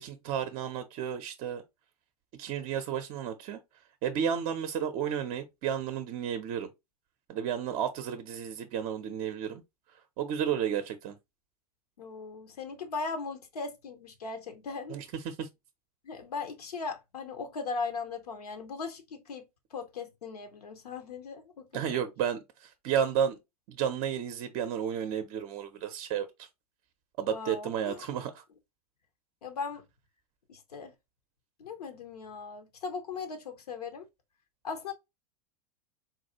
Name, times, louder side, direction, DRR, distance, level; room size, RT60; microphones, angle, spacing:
voice 1, 0.0-1.6 2.4-3.6 4.0-6.7 7.3-9.6 10.2-11.2 14.9-15.5 21.7-23.4 23.7-26.3 27.2-28.4, right 8 dB, 40° right, 0.6 m, -32 dB
voice 2, 12.0-15.0 16.0-19.4 19.7-22.0 27.2-28.2 29.4-29.8 30.5-30.9 31.6-34.1 34.6-34.9, left 4 dB, 70° left, 0.8 m, -38 dB
3.9 x 2.3 x 2.7 m
figure-of-eight pair, 85°, 20 cm